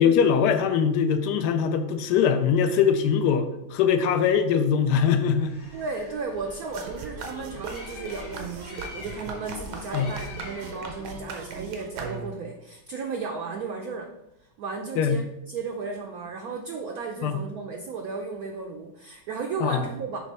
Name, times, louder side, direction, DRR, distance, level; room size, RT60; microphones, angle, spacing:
voice 1, 0.0-5.5 9.9-10.1 15.0-15.2 17.2-17.4 19.6-19.8, left 7 dB, 70° left, 8 dB, 1.0 m, -22 dB
Bird, 5.3-11.3, left 3 dB, 35° left, 1.0 m, -44 dB
voice 2, 5.7-14.1 14.6-15.2 15.5-20.2, right 4 dB, 70° right, 2 dB, 0.8 m, -34 dB
sound 1, 6.7-12.6, right 4 dB, 90° right, 1.7 m, -38 dB
6.3 x 3.4 x 5.3 m, 0.88 s
omnidirectional pair, 2.1 m